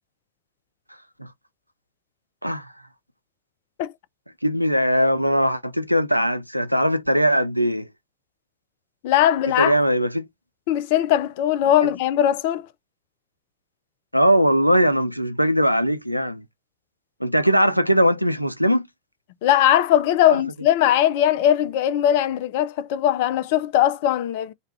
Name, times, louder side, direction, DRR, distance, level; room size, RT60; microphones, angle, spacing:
voice 1, 2.4-2.7 4.4-7.9 9.6-10.3 14.1-16.4 17.2-18.9 20.3-20.4, equal, 90° right, 0.3 m, -20 dB
voice 2, 9.0-9.7 10.7-12.7 19.4-24.5, left 11 dB, 50° left, 0.3 m, -20 dB
2.4 x 2.2 x 3.1 m
figure-of-eight pair, 90°, 0 cm